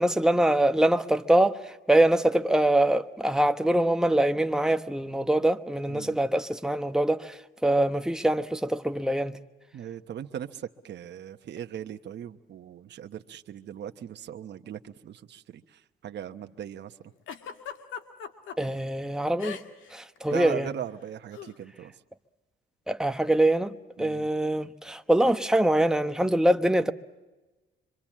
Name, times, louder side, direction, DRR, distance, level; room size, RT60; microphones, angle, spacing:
voice 1, 0.0-9.4 18.6-19.6 19.9-20.7 22.9-26.9, right 1 dB, 5° right, 1.1 m, -24 dB
voice 2, 9.7-16.9 20.3-21.9 24.0-24.3, right 9 dB, 60° right, 1.1 m, -39 dB
Giggle, 17.3-18.6 19.4-19.9 20.2-20.4 21.3-21.5, left 8 dB, 80° left, 1.9 m, -39 dB
25.5 x 25.0 x 7.4 m
cardioid pair, 90°, 20 cm